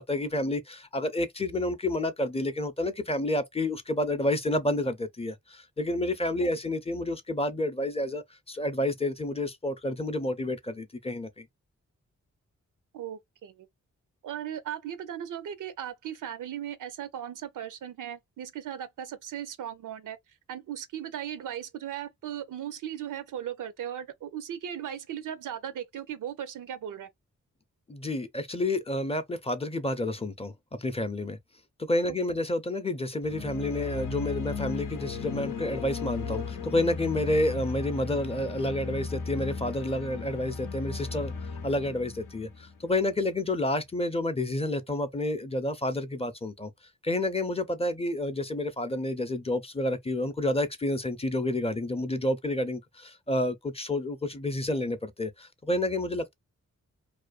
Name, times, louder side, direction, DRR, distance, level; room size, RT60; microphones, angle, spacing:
voice 1, 0.0-11.5 27.9-31.4 31.8-41.3 41.6-46.7 47.0-56.3, left 1 dB, 20° left, 0.5 m, -29 dB
voice 2, 12.9-13.7 14.2-20.2 20.5-27.1 32.1-32.2, right 10 dB, 75° right, 0.5 m, -37 dB
sound 1, 33.2-43.3, left 5 dB, 85° left, 0.6 m, -36 dB
2.4 x 2.2 x 2.3 m
cardioid pair, 40°, 31 cm